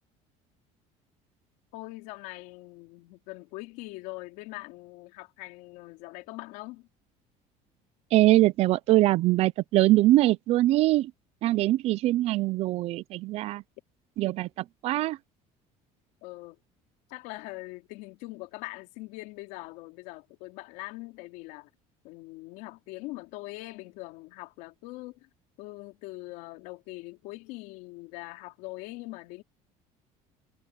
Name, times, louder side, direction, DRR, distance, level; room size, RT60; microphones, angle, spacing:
voice 1, 1.7-6.9 16.2-16.6 17.1-21.7 22.0-25.3 25.6-29.4, left 21 dB, 85° left, 4.0 m, -42 dB
voice 2, 8.1-11.1 11.4-13.6 14.2-15.2, right 16 dB, 45° right, 0.5 m, -23 dB
cardioid pair, 165°, 14 cm